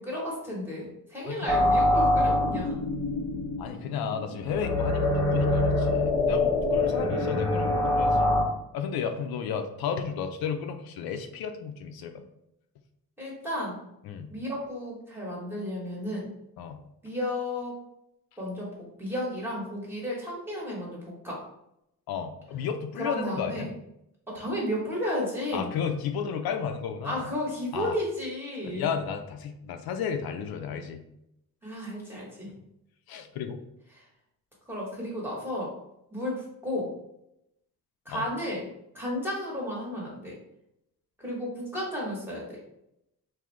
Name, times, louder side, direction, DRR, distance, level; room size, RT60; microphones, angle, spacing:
voice 1, 0.0-2.8 13.2-13.8 14.3-16.3 17.0-17.8 18.4-21.0 21.2-21.4 23.0-23.7 24.3-25.7 27.0-28.9 31.6-32.5 34.7-35.7 36.1-36.9 38.0-38.6 38.9-40.4 41.2-42.6, left 1 dB, 5° right, -5 dB, 1.0 m, -33 dB
sound 1, 1.5-8.4, left 2 dB, 10° left, 0.5 m, -25 dB
voice 2, 3.6-8.4 8.7-12.2 14.0-14.3 16.6-16.8 22.1-23.7 25.5-27.3 27.7-28.0 28.6-31.0 33.1-33.6 38.1-38.3, left 7 dB, 80° left, 6 dB, 0.5 m, -33 dB
3.7 x 2.6 x 3.1 m, 0.82 s
wide cardioid pair, 170°, 36 cm